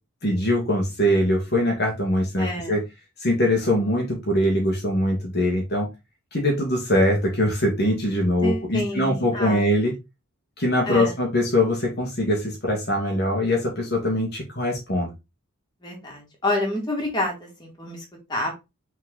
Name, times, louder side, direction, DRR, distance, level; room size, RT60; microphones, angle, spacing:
voice 1, 0.2-2.8 3.2-5.9 6.3-9.9 10.6-15.1, left 1 dB, 50° left, -1 dB, 2.0 m, -22 dB
voice 2, 2.4-2.8 8.4-9.6 10.8-11.1 15.8-18.5, left 1 dB, 20° left, -1 dB, 2.8 m, -28 dB
6.3 x 4.6 x 3.9 m, 0.23 s
head